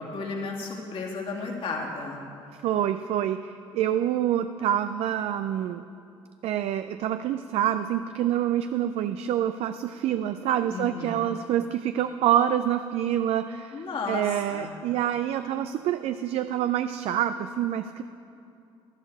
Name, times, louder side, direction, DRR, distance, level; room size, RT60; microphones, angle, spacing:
voice 1, 0.0-2.2 10.7-11.2 13.7-14.7, left 4 dB, 55° left, 0 dB, 2.4 m, -33 dB
voice 2, 2.6-5.8 6.4-18.0, right 11 dB, 65° right, 10 dB, 0.4 m, -27 dB
12.5 x 12.0 x 4.8 m, 2.6 s
supercardioid pair, 75°, 11 cm